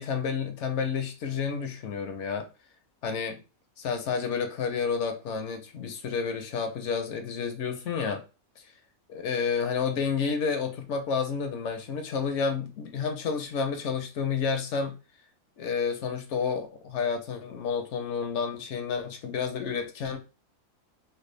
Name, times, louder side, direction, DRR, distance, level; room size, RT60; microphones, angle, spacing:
voice 1, 0.0-2.5 3.0-3.4 3.8-8.2 9.1-14.9 15.6-20.2, left 6 dB, 65° left, 7 dB, 0.8 m, -30 dB
3.2 x 2.2 x 3.2 m, 0.31 s
omnidirectional pair, 1.5 m